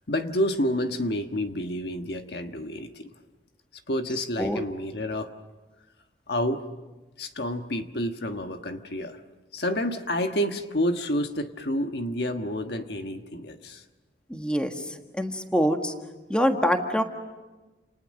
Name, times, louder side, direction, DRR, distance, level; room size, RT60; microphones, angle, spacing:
voice 1, 0.1-3.1 3.9-5.3 6.3-6.7 7.2-9.2 9.5-13.8, equal, 60° left, 6 dB, 1.4 m, -29 dB
voice 2, 14.3-14.7 15.2-15.9 16.3-17.0, equal, 5° left, 4 dB, 1.6 m, -24 dB
30.0 x 29.0 x 6.5 m, 1.2 s
head